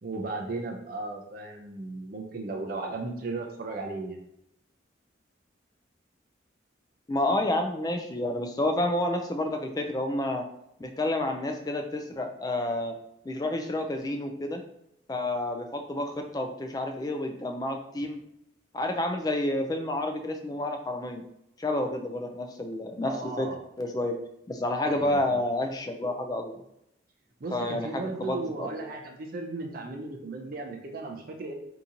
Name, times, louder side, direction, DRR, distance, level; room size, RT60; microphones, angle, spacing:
voice 1, 0.0-4.2 23.0-23.6 24.8-25.2 27.4-31.5, right 3 dB, 45° right, 1 dB, 0.4 m, -36 dB
voice 2, 7.1-10.5 10.8-12.9 13.2-14.6 15.1-18.2 18.7-21.2 21.6-23.5 23.8-24.1 24.5-26.6 27.5-28.7, left 1 dB, 20° left, 5 dB, 0.3 m, -29 dB
3.7 x 2.8 x 2.6 m, 0.79 s
head